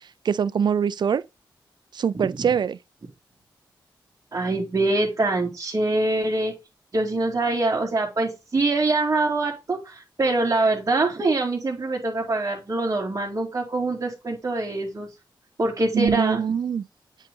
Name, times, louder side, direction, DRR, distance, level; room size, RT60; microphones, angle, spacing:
voice 1, 0.2-1.2 1.9-2.8 15.9-16.8, right 7 dB, 65° right, 0.5 m, -23 dB
voice 2, 4.3-6.5 6.9-15.1 15.6-16.4, right 2 dB, 40° right, 2.5 m, -24 dB
8.2 x 4.0 x 3.7 m
cardioid pair, 80°, 8 cm